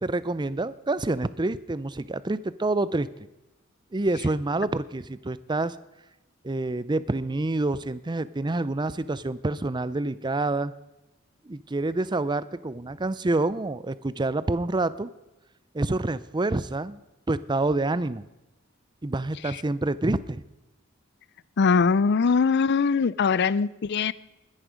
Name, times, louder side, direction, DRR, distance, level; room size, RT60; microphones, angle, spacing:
voice 1, 0.0-3.1 3.9-5.8 6.4-10.7 11.5-15.1 15.7-17.0 17.3-18.2 19.0-20.4, right 2 dB, 20° right, 16 dB, 0.6 m, -27 dB
voice 2, 21.6-24.1, left 5 dB, 55° left, 19 dB, 0.5 m, -22 dB
20.5 x 11.0 x 5.1 m, 0.99 s
head